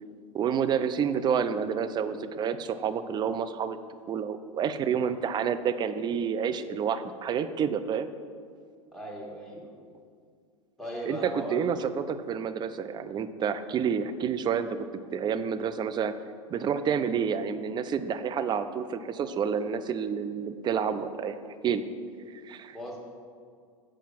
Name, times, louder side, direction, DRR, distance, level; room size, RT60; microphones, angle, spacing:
voice 1, 0.3-3.8 4.1-8.1 11.1-14.8 15.1-16.1 16.5-21.8 22.3-22.8, right 7 dB, 25° right, 11 dB, 0.4 m, -29 dB
voice 2, 8.9-9.7 10.8-11.7 22.7-23.0, equal, ahead, -4 dB, 1.9 m, -37 dB
7.3 x 5.0 x 5.9 m, 2.1 s
hypercardioid pair, 90°, 18 cm